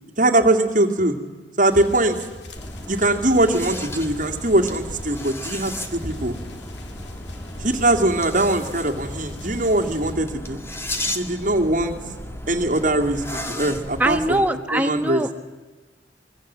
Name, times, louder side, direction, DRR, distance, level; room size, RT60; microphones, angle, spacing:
voice 1, 0.2-1.2 1.6-2.2 2.9-6.4 7.6-10.6 11.1-11.9 12.5-14.4 14.7-15.2, right 1 dB, 45° right, 3 dB, 2.4 m, -21 dB
sound 1, 1.7-10.1, left 1 dB, 70° left, 2.1 m, -40 dB
sound 2, 2.6-14.5, left 1 dB, 15° left, 1.5 m, -35 dB
voice 2, 14.0-15.3, right 1 dB, 10° right, 7 dB, 1.1 m, -22 dB
25.0 x 23.0 x 7.5 m, 1.3 s
head